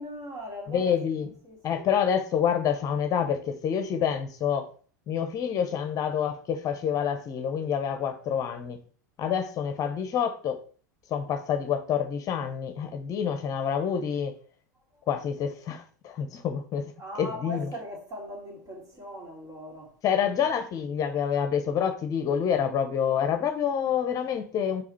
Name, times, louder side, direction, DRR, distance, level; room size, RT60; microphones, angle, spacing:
voice 1, 0.0-1.8 14.9-15.0 16.1-16.2 17.0-20.0, equal, 35° right, 2.9 m, -40 dB
voice 2, 0.7-1.3 1.6-4.7 5.1-8.8 9.2-10.6 11.1-14.3 15.1-16.9 17.2-17.6 20.0-24.8, left 8 dB, 35° left, 0.9 m, -27 dB
4.9 x 4.8 x 4.4 m
hypercardioid pair, 90°, 10 cm